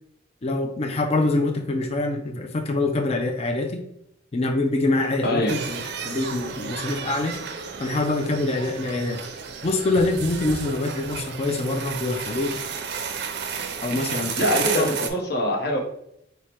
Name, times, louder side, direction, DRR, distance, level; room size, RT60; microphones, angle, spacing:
voice 1, 0.4-3.8 4.3-7.4 7.8-9.2 9.6-12.6 13.8-14.9, left 2 dB, 30° left, 4 dB, 0.4 m, -25 dB
voice 2, 5.2-5.5 14.4-15.8, left 1 dB, 55° left, 0 dB, 1.0 m, -23 dB
sound 1, 5.5-15.1, right 6 dB, 60° right, 0.5 m, -32 dB
4.7 x 2.1 x 4.3 m, 0.76 s
head